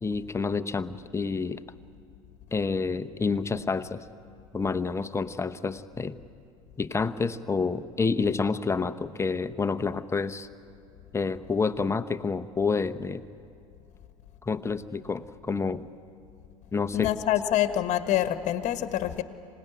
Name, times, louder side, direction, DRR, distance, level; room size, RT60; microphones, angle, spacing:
voice 1, 0.0-1.6 2.5-4.0 4.5-6.2 6.8-10.5 11.1-13.2 14.4-15.9 16.7-17.1, left 4 dB, 15° left, 10 dB, 0.9 m, -28 dB
voice 2, 16.9-19.2, left 12 dB, 45° left, 9 dB, 1.4 m, -26 dB
26.0 x 18.0 x 9.4 m, 2.4 s
figure-of-eight pair, 75°, 18 cm